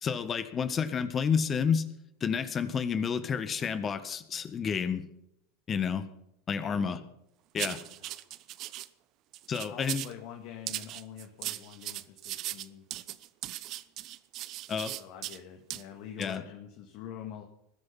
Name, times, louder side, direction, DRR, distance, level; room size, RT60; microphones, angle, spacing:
voice 1, 0.0-1.8 2.2-5.0 5.7-6.0 6.5-7.0 7.5-7.8 9.5-10.0 14.7-14.9 16.2-16.4, left 6 dB, 30° left, 11 dB, 1.6 m, -30 dB
voice 2, 6.6-7.0 8.0-8.1 9.7-12.8 13.1-13.3 15.0-17.4, left 9 dB, 55° left, 4 dB, 2.1 m, -45 dB
sound 1, 7.6-8.9 9.3-10.2 10.7-15.4 15.7-15.8 16.2-16.4, right 15 dB, 45° right, 0.9 m, -38 dB
20.5 x 12.0 x 5.7 m, 0.79 s
figure-of-eight pair, 80°, 0 cm